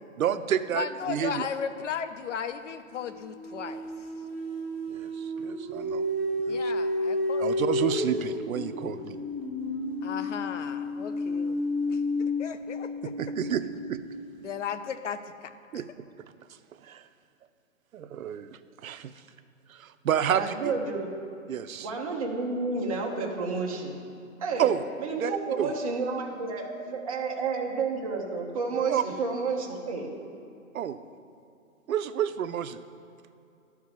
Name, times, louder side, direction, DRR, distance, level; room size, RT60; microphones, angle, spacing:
voice 1, 0.2-1.5 4.9-6.0 6.5-6.7 7.4-9.2 13.2-13.6 13.9-14.0 15.7-15.9 16.8-17.0 17.9-19.1 19.7-20.7 21.5-21.9 24.6-24.8 25.2-25.3 25.6-25.7 28.9-29.0 30.7-31.0 31.9-32.8, right 9 dB, 75° right, 11 dB, 0.6 m, -29 dB
voice 2, 0.7-3.9 6.5-7.9 10.0-13.2 14.4-15.8, left 7 dB, 60° left, 11 dB, 0.7 m, -36 dB
sound 1, 0.9-1.1 2.9-14.0, left 1 dB, 10° left, 0.9 m, -31 dB
voice 3, 20.3-21.1 21.8-23.9 24.4-24.7 25.0-26.6 26.9-30.2, right 4 dB, 25° right, -1 dB, 0.8 m, -30 dB
11.5 x 4.7 x 7.1 m, 2.6 s
hypercardioid pair, 170°, 42 cm